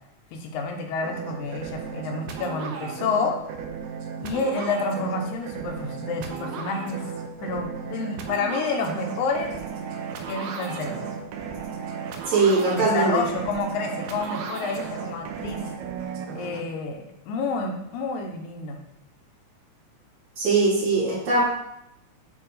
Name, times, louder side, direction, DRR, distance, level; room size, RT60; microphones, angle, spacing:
voice 1, 0.3-3.3 4.2-7.0 7.4-9.5 10.3-11.1 12.6-15.6 16.3-18.8, left 3 dB, 90° left, 3 dB, 2.2 m, -29 dB
sound 1, 1.0-16.6, right 6 dB, 85° right, 2.0 m, -35 dB
voice 2, 12.3-13.2 20.4-21.4, right 3 dB, 70° right, -8 dB, 3.5 m, -21 dB
8.6 x 2.9 x 4.0 m, 0.80 s
omnidirectional pair, 3.4 m